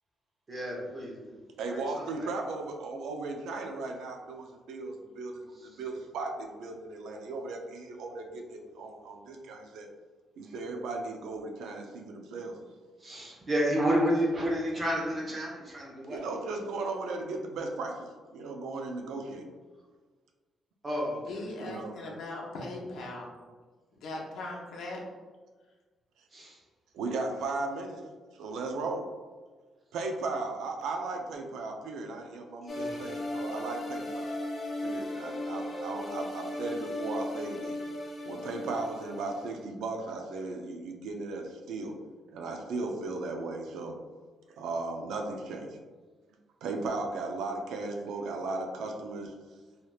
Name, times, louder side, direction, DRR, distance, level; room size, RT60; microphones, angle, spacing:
voice 1, 0.5-1.4 1.7-1.8 2.2-2.3 5.6-5.8 10.4-10.5 13.0-16.2 20.8-21.4 21.9-22.2 26.3-26.6 27.1-27.2 32.6-33.2, equal, 30° right, -3 dB, 0.8 m, -31 dB
voice 2, 1.6-9.9 10.4-12.5 16.1-19.5 21.6-21.9 26.9-28.0 28.3-29.1 29.9-34.3 34.8-37.8 38.2-41.9 42.3-44.0 44.6-45.8 46.6-49.3, right 3 dB, 85° right, 3 dB, 0.4 m, -36 dB
voice 3, 21.3-23.3 24.0-25.0, left 2 dB, 75° left, -2 dB, 0.7 m, -39 dB
sound 1, 32.7-39.6, left 1 dB, 30° left, 0.5 m, -36 dB
3.3 x 2.8 x 2.3 m, 1.4 s
cardioid pair, 135°, 0 cm